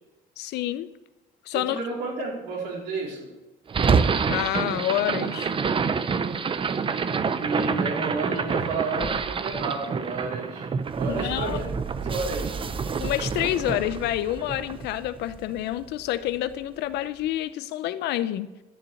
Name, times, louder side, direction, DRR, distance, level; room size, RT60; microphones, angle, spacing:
voice 1, 0.4-0.9 1.5-1.8 4.3-5.5 11.1-11.6 13.0-18.5, left 13 dB, 80° left, 14 dB, 0.7 m, -28 dB
voice 2, 1.5-3.3 7.4-11.7 12.0-12.6, right 3 dB, 85° right, -2 dB, 4.2 m, -31 dB
sound 1, 3.7-15.9, right 5 dB, 30° right, 0.7 m, -27 dB
12.0 x 7.1 x 8.4 m, 1.1 s
cardioid pair, 110°, 17 cm